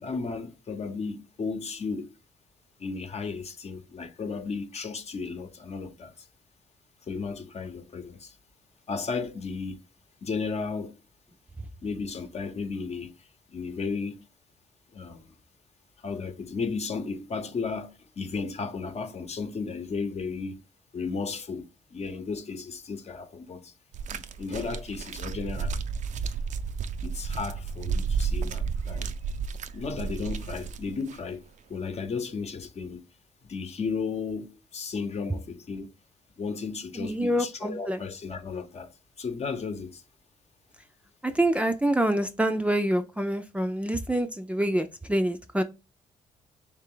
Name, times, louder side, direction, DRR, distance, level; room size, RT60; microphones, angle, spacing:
voice 1, 0.0-2.2 2.8-6.3 7.1-8.3 8.9-9.8 10.2-10.9 11.8-14.2 14.9-15.3 16.0-20.6 20.9-23.7 24.1-25.8 27.0-29.1 29.7-31.4 31.7-33.0 33.4-35.9 36.4-40.0, left 4 dB, 50° left, 0.9 m, -34 dB
sound 1, 23.9-31.2 32.0-32.1, right 5 dB, 60° right, 0.4 m, -32 dB
voice 2, 37.0-38.0 41.2-45.6, right 1 dB, 10° right, 0.5 m, -26 dB
3.4 x 3.2 x 3.7 m
supercardioid pair, 65°, 14 cm